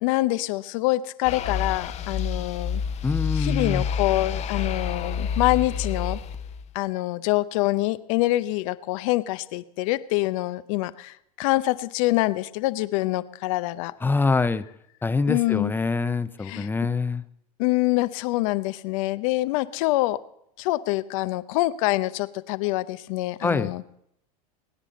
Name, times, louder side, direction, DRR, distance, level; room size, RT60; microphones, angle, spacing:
voice 1, 0.0-2.8 3.3-6.2 6.7-13.9 15.3-15.7 16.4-16.7 17.6-20.2 20.6-23.8, left 18 dB, 60° left, 14 dB, 0.7 m, -25 dB
sound 1, 1.2-6.7, left 6 dB, 35° left, 1.0 m, -29 dB
voice 2, 3.0-3.8 14.0-14.6 15.0-17.2 23.4-23.7, left 4 dB, 10° left, 13 dB, 0.7 m, -25 dB
22.0 x 9.9 x 4.2 m, 0.74 s
hypercardioid pair, 95°, 19 cm